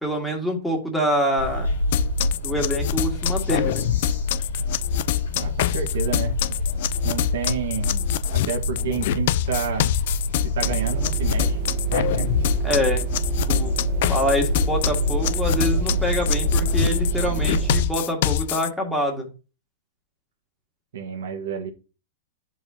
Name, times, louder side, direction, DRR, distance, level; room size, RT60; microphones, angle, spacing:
voice 1, 0.0-1.7 2.4-3.9 12.6-13.0 13.5-13.7 14.1-19.3, equal, 5° left, 0 dB, 1.8 m, -25 dB
sound 1, 1.4-17.8, left 2 dB, 90° left, 1.9 m, -27 dB
sound 2, 1.9-18.7, left 14 dB, 60° left, 0.3 m, -26 dB
voice 2, 5.3-6.4 7.0-10.0 10.5-11.6 11.9-12.3 20.9-21.7, right 7 dB, 75° right, 2 dB, 1.5 m, -30 dB
sound 3, 10.6-17.8, right 9 dB, 45° right, 0.6 m, -28 dB
10.5 x 4.6 x 2.8 m, 0.33 s
hypercardioid pair, 130°, 0 cm